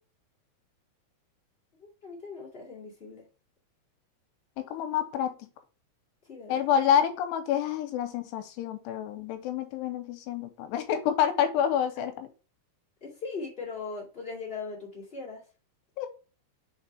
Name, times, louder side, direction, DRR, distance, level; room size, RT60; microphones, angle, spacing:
voice 1, 1.8-3.2 6.3-6.7 11.9-12.1 13.0-15.4, left 4 dB, 55° left, -4 dB, 0.6 m, -39 dB
voice 2, 4.6-5.3 6.5-12.3 16.0-16.1, left 9 dB, 85° left, 8 dB, 2.7 m, -28 dB
6.3 x 3.5 x 4.3 m, 0.34 s
omnidirectional pair, 5.0 m